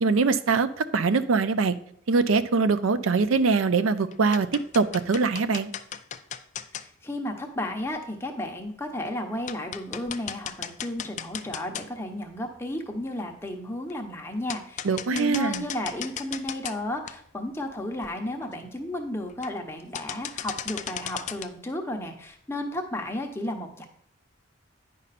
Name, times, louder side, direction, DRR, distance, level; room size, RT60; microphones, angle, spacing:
voice 1, 0.0-1.7 2.1-5.7 14.8-15.6, right 4 dB, 85° right, 13 dB, 0.5 m, -23 dB
sound 1, 3.4-3.8 4.1-6.8 7.9-8.0 8.6-8.7 9.1-9.2 9.5-12.1 12.6-12.7 13.9-14.0 14.5-16.8 17.1-17.2 17.7-17.8 18.0-18.1 18.4-18.7 19.3-19.7 19.9-21.5, left 9 dB, 35° left, 0.4 m, -36 dB
voice 2, 6.8-23.8, left 1 dB, 10° left, 3 dB, 0.9 m, -33 dB
9.9 x 5.4 x 4.1 m, 0.64 s
head